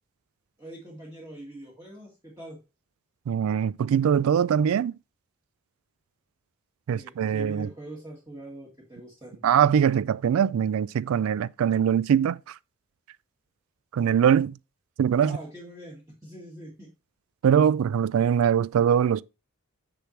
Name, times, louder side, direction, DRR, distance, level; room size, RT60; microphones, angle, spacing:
voice 1, 0.6-2.6 6.9-9.4 15.2-16.9, right 1 dB, 15° right, 1.7 m, -43 dB
voice 2, 3.3-5.0 6.9-7.7 9.4-12.5 13.9-14.6 15.0-15.4 17.4-19.2, right 8 dB, 75° right, 0.3 m, -22 dB
6.7 x 6.0 x 3.1 m
head